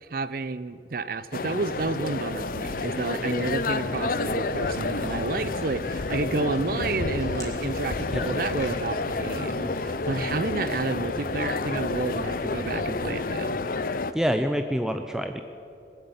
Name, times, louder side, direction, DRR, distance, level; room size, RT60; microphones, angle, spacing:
voice 1, 0.0-13.6, right 3 dB, 50° right, 15 dB, 0.6 m, -30 dB
sound 1, 1.3-14.1, left 3 dB, 50° left, 0.6 m, -30 dB
Walk footsteps, 3.3-13.2, equal, 20° left, 3.1 m, -41 dB
voice 2, 14.1-15.4, equal, 5° right, 6 dB, 0.5 m, -26 dB
21.0 x 8.1 x 8.2 m, 2.6 s
head